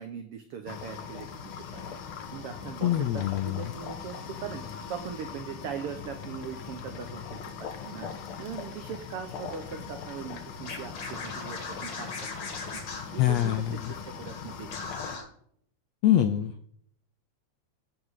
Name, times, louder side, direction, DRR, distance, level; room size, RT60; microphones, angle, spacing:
voice 1, 0.0-2.0 2.3-8.1 8.4-12.2 12.9-14.7 15.0-15.2, right 8 dB, 85° right, 6 dB, 1.3 m, -40 dB
sound 1, 0.7-15.2, left 7 dB, 65° left, 1.4 m, -41 dB
voice 2, 2.8-3.6 13.2-13.9 16.0-16.5, left 12 dB, 80° left, 9 dB, 1.5 m, -24 dB
Scratching (performance technique), 10.6-14.0 14.3-14.4 14.7-15.2, left 4 dB, 50° left, 3.0 m, -39 dB
14.0 x 5.0 x 5.5 m, 0.65 s
omnidirectional pair, 3.7 m